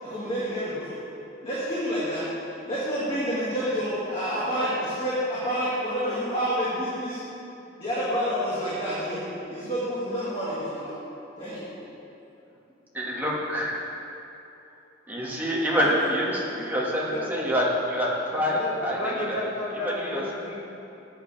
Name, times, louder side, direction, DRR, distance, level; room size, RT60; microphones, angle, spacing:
voice 1, 0.0-1.0 1.4-2.2 2.6-7.2 7.8-10.9 11.4-11.7, equal, 30° left, -10 dB, 2.3 m, -28 dB
voice 2, 12.9-13.8 15.1-19.5 19.8-20.2, equal, 10° right, -5 dB, 1.8 m, -26 dB
voice 3, 17.0-17.3 18.4-20.6, left 1 dB, 70° left, -6 dB, 2.7 m, -32 dB
14.0 x 9.6 x 3.5 m, 2.8 s
head